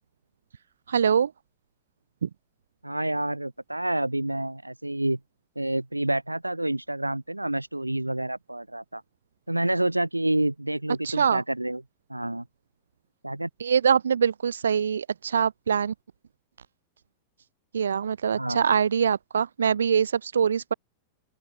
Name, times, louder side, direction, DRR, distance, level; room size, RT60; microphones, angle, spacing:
voice 1, 0.9-1.3 2.2-2.3 11.0-11.4 13.6-15.9 17.7-20.7, right 7 dB, 70° right, 2.8 m, -23 dB
voice 2, 2.8-5.2 5.6-9.0 9.5-11.8 12.1-12.4 13.2-13.5 18.3-18.7, right 1 dB, 85° right, 7.2 m, -28 dB
open air
figure-of-eight pair, 90°, 0 cm